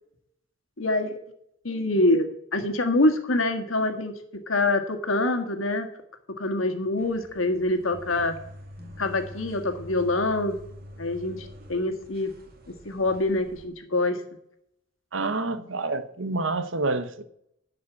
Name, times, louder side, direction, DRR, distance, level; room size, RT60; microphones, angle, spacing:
voice 1, 0.8-1.2 1.6-5.9 6.4-8.3 9.0-10.6 11.0-12.3 12.8-14.2, left 2 dB, 85° left, 1.7 m, -25 dB
sound 1, 7.0-13.7, left 1 dB, 50° right, 1.9 m, -45 dB
voice 2, 15.1-17.2, right 3 dB, 75° right, 0.9 m, -28 dB
11.0 x 5.1 x 8.4 m
head